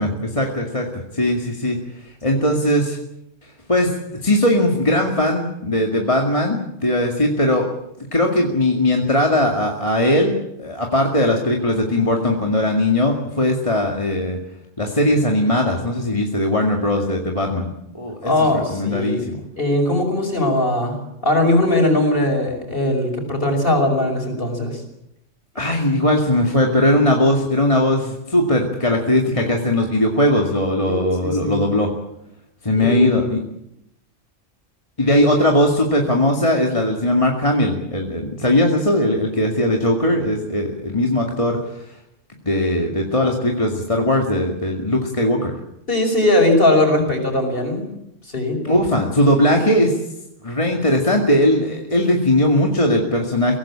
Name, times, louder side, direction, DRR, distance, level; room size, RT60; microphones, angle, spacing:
voice 1, 0.0-3.0 3.4-3.9 4.2-7.7 8.1-14.4 14.8-19.4 25.6-31.9 32.6-33.4 35.0-41.9 42.4-45.5 48.6-50.0 50.4-53.6, left 1 dB, 25° left, 1 dB, 2.2 m, -19 dB
voice 2, 18.2-19.2 19.6-21.0 21.2-24.8 30.9-31.6 32.7-33.2 45.9-47.9 48.2-48.6, left 1 dB, 45° left, 4 dB, 5.6 m, -19 dB
23.0 x 17.5 x 8.7 m, 0.83 s
omnidirectional pair, 1.3 m